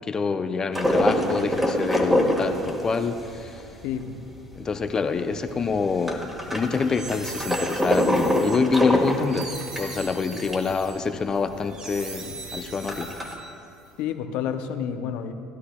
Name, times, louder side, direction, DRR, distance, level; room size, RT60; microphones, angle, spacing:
voice 1, 0.0-3.6 4.5-9.5 9.8-13.1, left 5 dB, 30° left, 8 dB, 0.6 m, -26 dB
sound 1, 0.7-4.8 5.1-5.2 5.4-10.7 11.1-11.2 11.4-11.5 12.1-13.3, equal, 10° right, 1.7 m, -25 dB
voice 2, 3.8-4.2 14.0-15.3, left 8 dB, 70° left, 8 dB, 0.7 m, -29 dB
sound 2, 6.6-13.8, right 4 dB, 45° right, 1.6 m, -40 dB
16.5 x 11.0 x 2.3 m, 2.6 s
hypercardioid pair, 70°, 2 cm